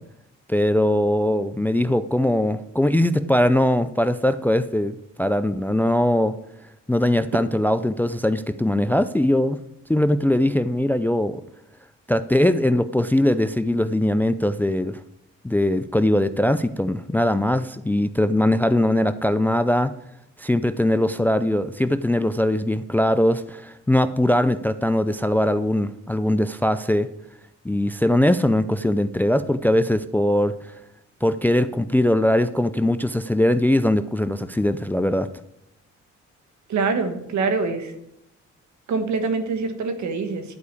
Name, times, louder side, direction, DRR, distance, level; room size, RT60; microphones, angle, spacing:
voice 1, 0.5-6.4 6.9-9.6 9.9-11.4 12.1-15.0 15.4-19.9 20.4-27.1 27.6-30.5 31.2-35.3, left 1 dB, 5° left, 13 dB, 0.4 m, -21 dB
voice 2, 36.7-37.9 38.9-40.6, right 4 dB, 70° right, 8 dB, 1.5 m, -24 dB
11.0 x 4.8 x 8.3 m, 0.82 s
cardioid pair, 90°, 30 cm